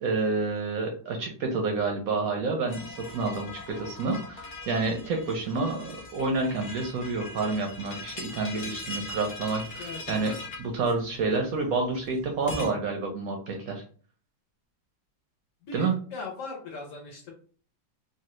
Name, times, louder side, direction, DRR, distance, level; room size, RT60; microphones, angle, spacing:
voice 1, 0.0-10.3 10.6-13.8 15.7-15.9, right 3 dB, 70° right, 2 dB, 0.9 m, -29 dB
sound 1, 2.7-12.7, left 2 dB, 80° left, 0.4 m, -41 dB
voice 2, 9.8-10.3 15.6-17.3, left 3 dB, 60° left, 1 dB, 0.9 m, -39 dB
3.1 x 2.2 x 3.0 m, 0.43 s
omnidirectional pair, 1.9 m